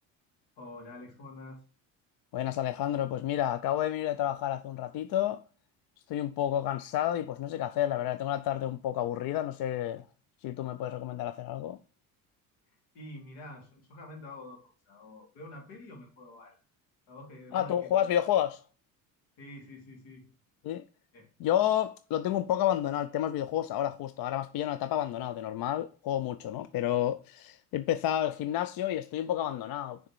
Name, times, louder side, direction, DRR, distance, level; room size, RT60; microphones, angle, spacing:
voice 1, 0.6-1.6 12.9-16.6 17.1-18.1 19.4-20.3 21.1-21.3, left 2 dB, 80° left, 2.3 m, -47 dB
voice 2, 2.3-5.4 6.1-10.0 10.4-11.8 17.5-18.6 20.6-20.8 21.4-30.0, left 11 dB, 55° left, 0.5 m, -30 dB
6.3 x 3.4 x 4.6 m
supercardioid pair, 75°, 44 cm